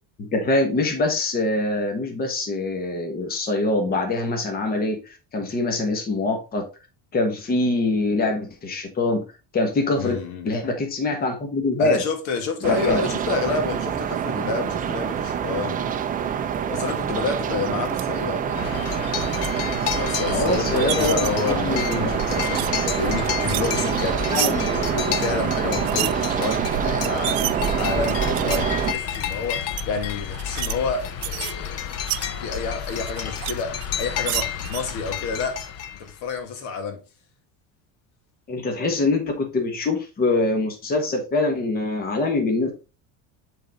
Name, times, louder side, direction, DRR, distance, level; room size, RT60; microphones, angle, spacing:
voice 1, 0.2-6.7 7.1-9.2 9.5-10.2 10.4-12.0 12.6-13.0 20.3-21.1 21.5-22.1 23.8-24.1 24.3-24.7 38.5-42.7, left 2 dB, 25° left, 1.3 m, -24 dB
voice 2, 10.0-10.6 11.8-16.0 16.7-18.7 19.9-31.9 32.4-35.7 35.9-37.0, left 4 dB, 75° left, 1.9 m, -29 dB
sound 1, 12.6-28.9, right 8 dB, 20° right, 0.4 m, -26 dB
sound 2, 17.8-18.0 18.9-19.5 20.5-21.3 21.7-22.7 23.0-24.5 25.7-26.1 26.7-26.8 27.0-28.6 29.1-29.3 29.7-29.8 30.3-30.7 31.0-32.2 32.8-33.5 33.8-34.8, right 18 dB, 75° right, 0.6 m, -30 dB
sound 3, 18.5-36.3, left 8 dB, 40° left, 0.7 m, -31 dB
7.4 x 4.0 x 4.0 m
cardioid pair, 160°, 39 cm